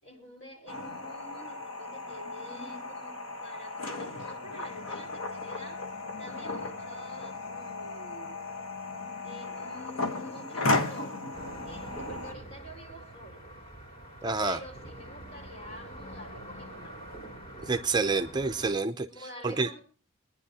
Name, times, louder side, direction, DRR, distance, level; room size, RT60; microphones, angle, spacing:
voice 1, 0.0-5.8 6.2-8.4 9.2-11.2 11.6-13.4 14.4-16.9 18.5-18.6 19.0-19.8, equal, 60° left, -2 dB, 4.8 m, -48 dB
sound 1, 0.7-12.3, left 2 dB, 80° left, 1.3 m, -35 dB
sound 2, 11.3-18.7, right 1 dB, 30° left, 3.0 m, -45 dB
voice 2, 14.2-14.6 17.7-19.1 19.4-19.7, right 3 dB, 20° right, 6 dB, 0.5 m, -28 dB
24.0 x 10.0 x 2.8 m, 0.38 s
head